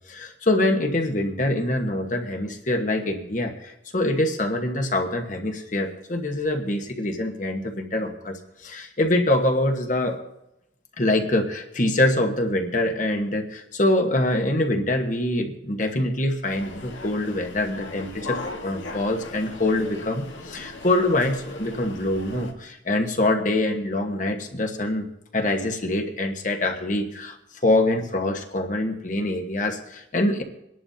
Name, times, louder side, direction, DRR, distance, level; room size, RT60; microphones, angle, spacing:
voice 1, 0.0-10.2 11.0-25.1 25.3-27.4 27.6-30.4, left 1 dB, 40° left, 4 dB, 1.3 m, -24 dB
sound 1, 16.5-22.5, left 3 dB, 80° left, 1.9 m, -38 dB
23.5 x 11.0 x 2.8 m, 0.86 s
head